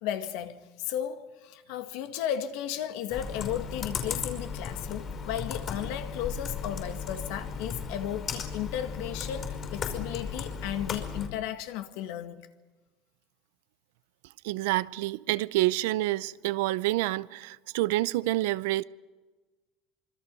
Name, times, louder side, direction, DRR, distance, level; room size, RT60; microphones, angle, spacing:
voice 1, 0.0-12.5, left 10 dB, 75° left, 1.9 m, -34 dB
Computer keyboard, 3.1-11.3, left 5 dB, 35° left, 5.4 m, -36 dB
voice 2, 14.4-18.8, right 17 dB, 85° right, 0.6 m, -28 dB
26.0 x 25.0 x 5.4 m
supercardioid pair, 135°, 0 cm